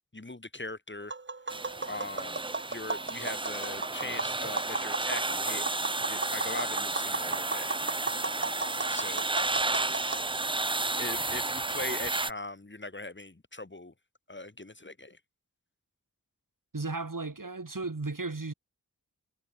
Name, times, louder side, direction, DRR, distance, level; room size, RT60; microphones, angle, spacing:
voice 1, 0.1-1.1 1.9-2.4 2.7-5.7 6.1-7.8 8.9-9.3 11.0-13.9 14.3-15.2, left 2 dB, 35° left, 2.4 m, -40 dB
Tap, 1.0-10.2, right 3 dB, 35° right, 1.0 m, -36 dB
sound 1, 1.5-12.3, right 2 dB, 15° right, 0.5 m, -32 dB
voice 2, 16.7-18.5, right 3 dB, 65° right, 7.6 m, -35 dB
wide cardioid pair, 45°, 35 cm